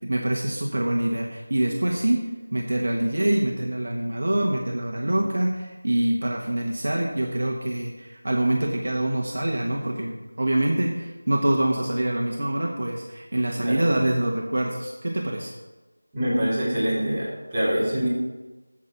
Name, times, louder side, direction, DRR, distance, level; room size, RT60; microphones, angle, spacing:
voice 1, 0.0-2.3 2.5-15.5, right 1 dB, 55° right, 0 dB, 1.4 m, -25 dB
voice 2, 13.6-14.0 16.1-18.1, equal, 10° right, -13 dB, 3.4 m, -25 dB
9.4 x 7.4 x 5.2 m, 1.2 s
figure-of-eight pair, 170°, 0 cm